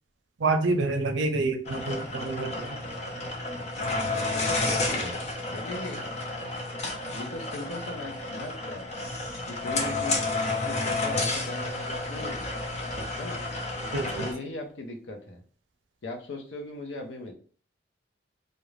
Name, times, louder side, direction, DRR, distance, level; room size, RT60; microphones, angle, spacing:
voice 1, 0.4-2.8 13.9-14.3, right 3 dB, 80° right, 6 dB, 0.5 m, -27 dB
sound 1, 1.6-14.3, left 2 dB, 35° left, 0.5 m, -31 dB
voice 2, 4.0-6.1 7.1-8.9 9.5-12.5 13.2-13.4 14.2-15.4 16.0-17.3, left 2 dB, 85° left, 3 dB, 0.6 m, -39 dB
2.5 x 2.1 x 3.1 m, 0.42 s
head